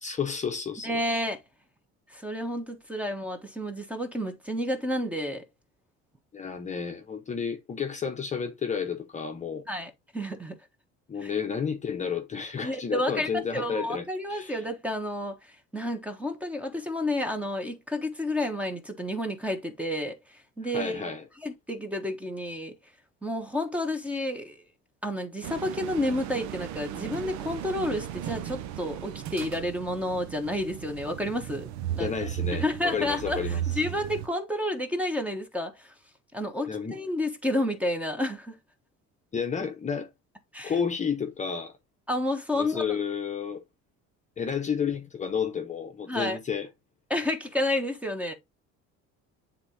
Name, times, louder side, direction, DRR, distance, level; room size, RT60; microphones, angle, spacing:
voice 1, 0.0-1.0 6.3-9.6 11.1-14.6 20.7-21.2 32.0-33.6 36.7-37.0 39.3-40.1 40.6-41.7 42.5-43.6 44.4-46.7, left 6 dB, 25° left, 0.9 m, -31 dB
voice 2, 0.8-1.4 2.1-5.4 9.7-10.6 11.2-11.3 12.6-21.1 21.4-22.7 23.2-24.6 25.0-32.1 32.6-35.9 36.3-38.6 40.5-40.8 42.1-42.8 46.1-46.4 47.1-48.3, left 1 dB, 5° right, 1.2 m, -30 dB
sound 1, 25.4-34.3, right 11 dB, 75° right, 0.8 m, -36 dB
9.7 x 3.7 x 2.8 m
cardioid pair, 145°, 30 cm